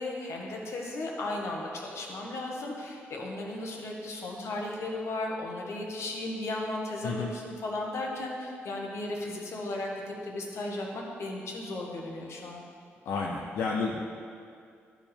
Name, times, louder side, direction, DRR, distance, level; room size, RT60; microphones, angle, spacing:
voice 1, 0.0-12.6, left 2 dB, 65° left, -1 dB, 1.3 m, -35 dB
voice 2, 13.0-14.0, left 4 dB, 85° left, -2 dB, 0.6 m, -30 dB
12.0 x 5.0 x 3.5 m, 2.3 s
cardioid pair, 65°, 5 cm